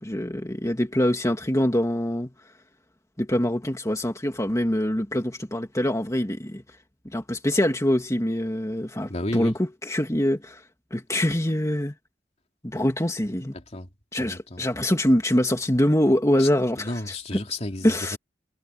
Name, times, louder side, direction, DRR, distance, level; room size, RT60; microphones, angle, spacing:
voice 1, 0.0-2.3 3.2-6.6 7.1-10.6 10.9-11.9 12.6-13.5 14.1-16.9 17.3-17.4 17.8-18.2, left 1 dB, 20° left, 2.5 m, -24 dB
voice 2, 9.1-9.6 13.5-13.9 14.2-14.6 16.4-16.5 16.8-18.2, left 1 dB, 35° left, 2.9 m, -32 dB
head